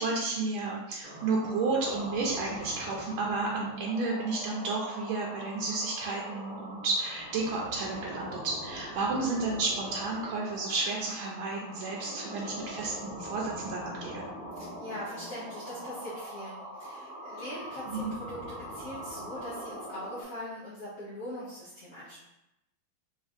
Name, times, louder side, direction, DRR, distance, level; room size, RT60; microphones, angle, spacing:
voice 1, 0.0-14.3 17.9-18.1, right 3 dB, 85° right, -2 dB, 1.4 m, -32 dB
sound 1, 1.0-20.2, equal, 35° right, 0.9 m, -42 dB
voice 2, 14.5-22.2, left 1 dB, 55° left, -10 dB, 1.0 m, -42 dB
4.3 x 3.0 x 2.4 m, 0.90 s
omnidirectional pair, 2.3 m